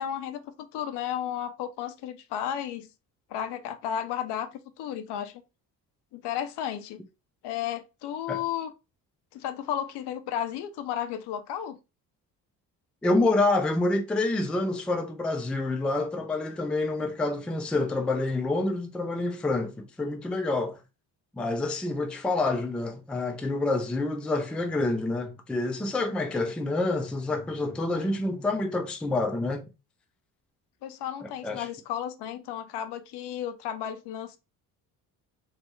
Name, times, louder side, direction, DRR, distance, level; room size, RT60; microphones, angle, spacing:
voice 1, 0.0-2.9 3.3-4.5 4.8-5.4 6.1-7.0 7.4-8.7 9.3-11.8 30.8-34.4, left 10 dB, 60° left, 0.6 m, -33 dB
voice 2, 13.0-20.8 21.3-29.7 31.2-31.7, left 2 dB, ahead, 0.3 m, -27 dB
3.3 x 2.0 x 3.0 m
hypercardioid pair, 55°, 45 cm